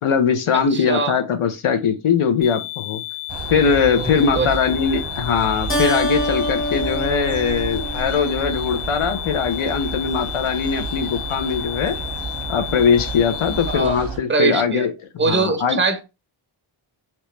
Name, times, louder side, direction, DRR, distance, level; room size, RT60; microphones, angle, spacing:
voice 1, 0.0-3.0 3.5-12.0 12.5-14.9 15.3-15.8, left 6 dB, 85° left, 0.7 m, -21 dB
voice 2, 0.5-1.2 4.0-4.5 13.7-14.0 14.3-14.9 15.2-16.0, right 4 dB, 25° right, 0.7 m, -22 dB
sound 1, 2.4-13.8, left 19 dB, 55° left, 0.9 m, -32 dB
sound 2, 3.3-14.2, right 5 dB, 65° right, 0.8 m, -31 dB
Keyboard (musical), 5.7-8.6, left 1 dB, 25° left, 0.6 m, -26 dB
3.0 x 3.0 x 3.2 m
wide cardioid pair, 85°, 49 cm